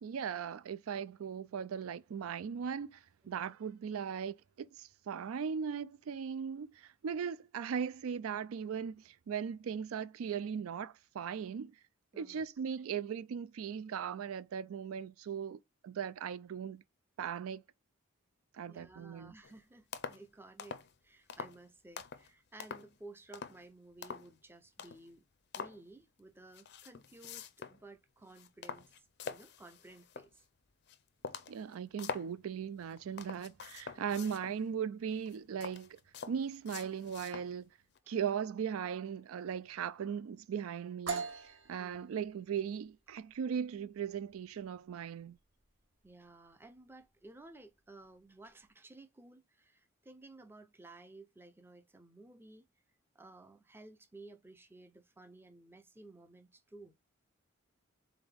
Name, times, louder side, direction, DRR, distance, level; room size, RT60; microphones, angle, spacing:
voice 1, 0.0-11.8 12.2-16.8 17.2-17.6 18.5-19.3 31.5-36.0 36.3-37.7 38.1-45.4, right 7 dB, 80° right, 0.4 m, -38 dB
voice 2, 12.1-12.4 18.7-25.2 25.6-28.9 29.2-30.4 34.1-34.3 38.0-38.2 41.8-42.0 46.0-52.6 53.1-57.0, right 2 dB, 10° right, 0.5 m, -55 dB
sound 1, 19.4-19.6 19.9-20.2 20.6-20.9 21.3-21.6 22.0-22.3 22.6-23.0 23.3-23.6 24.0-24.3 24.8-25.1 25.5-25.8 26.5-27.8 28.2-30.4 30.9-31.0 31.2-32.3 32.8-34.6 35.2-37.5 38.0-38.1, left 5 dB, 50° left, 0.5 m, -45 dB
sound 2, 41.1-48.7, right 4 dB, 55° right, 0.9 m, -46 dB
3.9 x 3.9 x 3.4 m
head